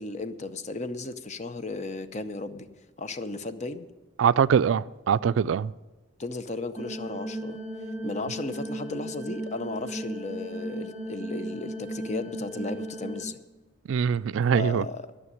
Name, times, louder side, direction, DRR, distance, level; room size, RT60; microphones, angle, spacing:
voice 1, 0.0-2.7 3.0-3.9 6.2-7.6 8.0-13.4 14.5-15.0, left 2 dB, 35° left, 0.7 m, -35 dB
voice 2, 4.2-5.7 13.9-14.8, right 7 dB, 85° right, 0.3 m, -23 dB
sound 1, 6.8-13.2, right 1 dB, 5° right, 1.2 m, -36 dB
12.5 x 6.4 x 9.7 m
head